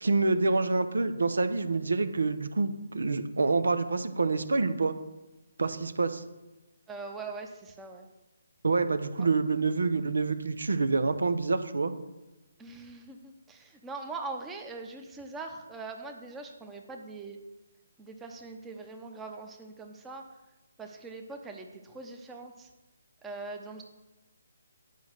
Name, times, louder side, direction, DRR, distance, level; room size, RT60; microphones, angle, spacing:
voice 1, 0.0-4.9 5.6-6.2 8.6-11.9, right 3 dB, 85° right, 10 dB, 0.9 m, -27 dB
voice 2, 6.9-8.1 9.2-9.3 12.6-17.4 18.0-20.2 20.8-22.7 23.2-23.8, right 3 dB, 10° right, 3 dB, 0.8 m, -42 dB
9.4 x 5.5 x 6.5 m, 1.0 s
hypercardioid pair, 155°, 0 cm